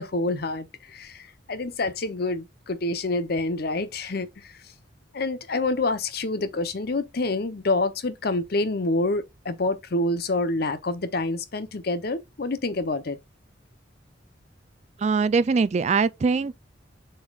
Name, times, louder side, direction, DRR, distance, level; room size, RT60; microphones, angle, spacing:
voice 1, 0.0-4.5 5.1-13.2, left 2 dB, 55° left, 0.8 m, -27 dB
voice 2, 15.0-16.5, right 4 dB, 35° right, 0.3 m, -22 dB
7.2 x 5.5 x 2.4 m
head